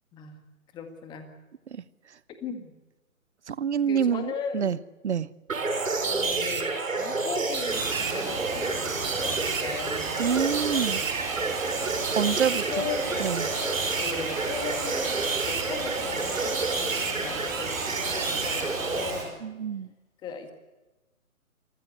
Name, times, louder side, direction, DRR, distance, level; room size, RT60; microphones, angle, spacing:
voice 1, 0.1-0.4 0.7-1.3 2.4-2.7 3.9-4.7 6.0-10.2 12.5-13.3 14.0-19.3 20.2-20.5, left 6 dB, 10° left, 7 dB, 1.8 m, -37 dB
voice 2, 3.5-4.8 5.0-5.3 10.2-11.0 12.1-12.8 13.2-13.5 19.4-19.9, right 7 dB, 55° right, 19 dB, 0.9 m, -27 dB
sound 1, 5.5-19.1, right 4 dB, 70° right, 6.1 m, -29 dB
Bird vocalization bird call bird song, 7.7-19.2, right 4 dB, 10° right, 4.3 m, -36 dB
27.0 x 15.0 x 8.3 m, 1.1 s
figure-of-eight pair, 150°, 42 cm